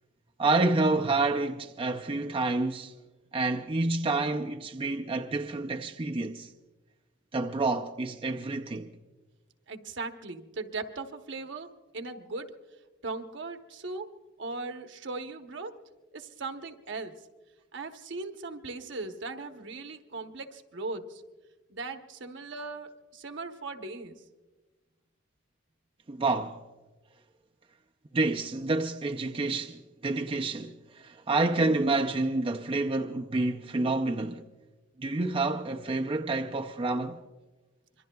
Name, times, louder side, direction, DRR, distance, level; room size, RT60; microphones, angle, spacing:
voice 1, 0.4-2.9 3.3-6.5 7.3-8.9 26.1-26.6 28.1-34.4 35.0-37.2, right 3 dB, 30° right, 0.5 m, -28 dB
voice 2, 9.7-12.5 13.0-14.1 14.4-15.8 16.1-17.2 17.7-21.2 21.7-24.2, right 3 dB, 65° right, 1.0 m, -38 dB
26.0 x 23.0 x 2.3 m
head